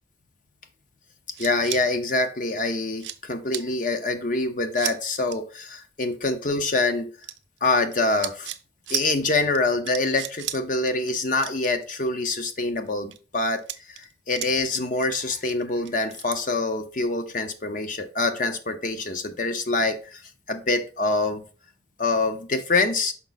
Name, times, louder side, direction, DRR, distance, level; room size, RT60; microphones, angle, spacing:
sound 1, 1.3-1.8 2.5-2.6 2.9-3.2 3.5-3.7 4.8-5.0 5.2-5.4 7.2-7.9 8.2-8.6 8.9-9.1 9.5-9.6 9.8-10.6 10.9-11.1 11.4-12.4 12.9-13.2 13.6-14.7 15.0-16.4, right 13 dB, 80° right, 0.5 m, -34 dB
voice 1, 1.4-7.1 7.6-8.5 8.9-20.2 20.5-21.4 22.0-23.1, left 3 dB, 45° left, 0.8 m, -25 dB
5.9 x 5.0 x 4.0 m
head